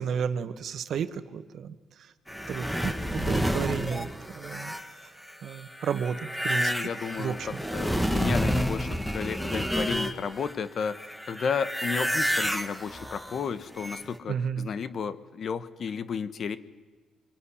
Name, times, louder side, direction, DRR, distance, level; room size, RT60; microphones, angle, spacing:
voice 1, 0.0-1.7 2.5-4.1 4.4-4.7 5.4-6.7 7.2-7.5 14.3-14.7, right 7 dB, 65° right, 11 dB, 1.3 m, -32 dB
sound 1, 2.3-10.5 10.8-14.2, equal, ahead, 1.8 m, -30 dB
voice 2, 6.5-16.6, left 6 dB, 55° left, 13 dB, 1.3 m, -33 dB
23.5 x 22.0 x 10.0 m, 1.3 s
cardioid pair, 90°, 0 cm